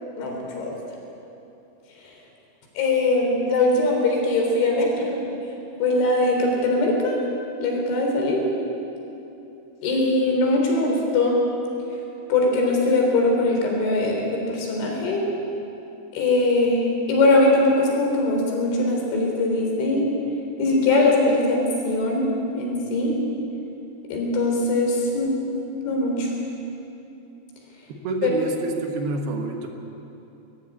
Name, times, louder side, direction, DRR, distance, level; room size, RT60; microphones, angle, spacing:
voice 1, 0.2-0.7 2.8-5.2 5.8-7.2 7.6-8.4 9.8-11.4 12.3-15.3 16.1-20.1 20.6-22.3 22.5-23.1 24.1-25.3 25.8-26.3 28.2-28.3, left 2 dB, 80° left, 0 dB, 6.1 m, -21 dB
voice 2, 28.0-29.7, right 3 dB, 65° right, 3 dB, 3.1 m, -27 dB
21.5 x 15.0 x 9.7 m, 2.9 s
omnidirectional pair, 5.3 m